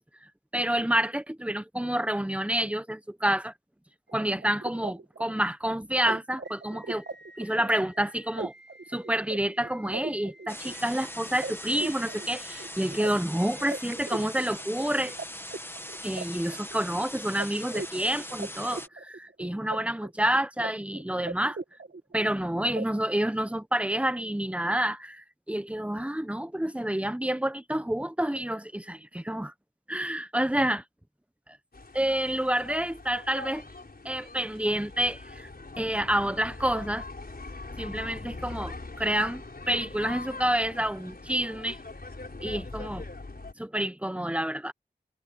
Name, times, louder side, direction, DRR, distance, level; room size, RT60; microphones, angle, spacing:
voice 1, 0.5-3.5 4.1-7.0 7.4-8.5 8.9-15.1 16.0-21.6 22.1-29.5 29.9-30.8 31.9-33.7 34.0-35.5 35.8-37.0 37.8-41.8 42.4-43.0 43.6-44.7, right 1 dB, 5° right, 1.1 m, -28 dB
sound 1, 4.1-15.2 15.5-17.0 17.4-17.5 17.7-19.8 20.0-20.7 21.0-22.4 22.8-22.9, right 3 dB, 75° right, 1.3 m, -40 dB
sound 2, 10.5-18.9, left 1 dB, 10° left, 2.0 m, -41 dB
sound 3, 31.7-43.5, left 3 dB, 55° left, 4.8 m, -42 dB
wide cardioid pair, 55°, 18 cm